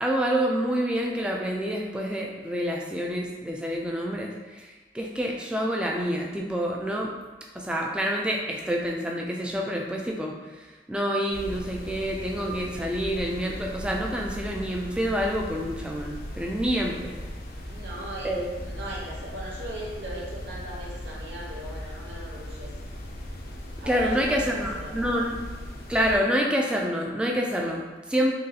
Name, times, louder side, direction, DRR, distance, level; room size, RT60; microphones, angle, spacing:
voice 1, 0.0-7.1 7.6-10.3 10.9-17.2 18.2-18.5 23.9-25.4 25.9-28.3, equal, 5° right, -1 dB, 0.3 m, -27 dB
sound 1, 11.3-26.2, equal, 55° left, 0.5 m, -38 dB
voice 2, 17.7-18.3 18.6-22.7 23.8-25.2, right 1 dB, 85° right, -4 dB, 0.9 m, -39 dB
3.8 x 3.0 x 2.8 m, 1.2 s
head